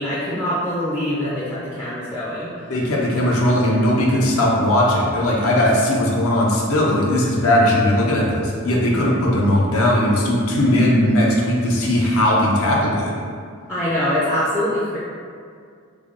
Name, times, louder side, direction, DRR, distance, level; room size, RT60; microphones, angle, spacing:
voice 1, 0.0-2.5 13.7-15.0, left 1 dB, 10° left, -9 dB, 0.3 m, -23 dB
voice 2, 2.7-13.1, left 1 dB, 75° left, -3 dB, 0.6 m, -18 dB
3.3 x 2.2 x 3.6 m, 2.2 s
head